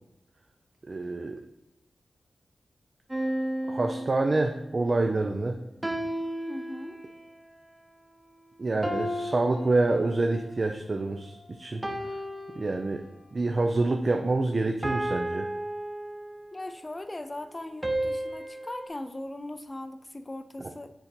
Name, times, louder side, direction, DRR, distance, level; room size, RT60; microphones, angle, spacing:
voice 1, 0.9-1.4 3.7-5.6 8.6-11.8 12.6-13.0 13.3-15.5, right 2 dB, 45° right, 4 dB, 0.5 m, -27 dB
sound 1, 3.1-4.8 5.8-7.3 8.8-10.5 11.8-13.3 14.8-16.6 17.8-18.9, right 1 dB, 20° right, 0.9 m, -33 dB
voice 2, 6.5-7.0 16.5-20.9, left 1 dB, 25° left, 9 dB, 0.4 m, -39 dB
7.1 x 3.9 x 4.3 m, 0.89 s
cardioid pair, 65°, 0 cm